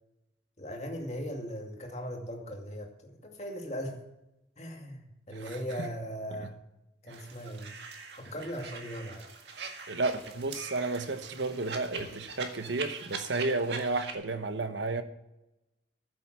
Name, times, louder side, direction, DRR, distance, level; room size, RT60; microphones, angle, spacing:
voice 1, 0.6-4.0 4.6-6.6 7.0-7.7 8.2-9.2, equal, 35° left, 2.3 m, -39 dB
voice 2, 5.3-5.9 6.3-6.5 7.1-7.3 9.9-15.0, right 3 dB, 85° right, 1.1 m, -32 dB
sound 1, 7.1-14.1, right 5 dB, 70° right, 1.9 m, -42 dB
14.5 x 7.8 x 6.2 m
head